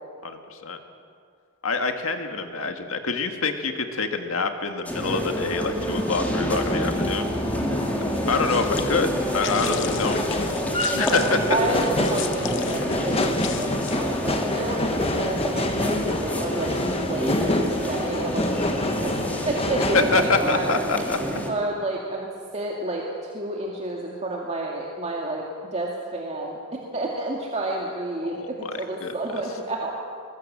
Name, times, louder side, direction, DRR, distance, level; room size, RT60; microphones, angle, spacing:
voice 1, 0.2-0.8 1.6-7.3 8.3-10.2 10.9-11.4 11.7-11.8 19.9-21.2 28.2-28.7 29.0-29.4, left 4 dB, 80° left, 6 dB, 1.9 m, -26 dB
sound 1, 4.9-21.5, equal, 5° left, 2.8 m, -28 dB
sound 2, 5.7-20.3, left 1 dB, 30° left, 1.6 m, -28 dB
voice 2, 7.5-7.9 11.1-19.2 19.4-20.7 21.3-25.4 25.7-29.9, right 2 dB, 30° right, -2 dB, 2.2 m, -30 dB
sound 3, 8.2-14.4, left 10 dB, 65° left, 0.9 m, -37 dB
22.0 x 21.5 x 7.5 m, 2.3 s
head